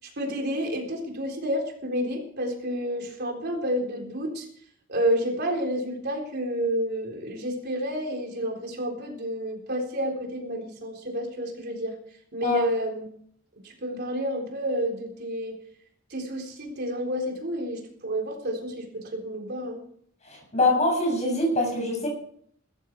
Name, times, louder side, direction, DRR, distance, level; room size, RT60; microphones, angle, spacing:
voice 1, 0.0-4.5 4.9-12.0 12.3-13.1 13.6-15.6 16.1-19.8, equal, 55° right, 2 dB, 3.9 m, -30 dB
voice 2, 20.3-22.1, left 2 dB, 35° left, 1 dB, 7.2 m, -24 dB
17.0 x 14.0 x 4.7 m, 0.64 s
head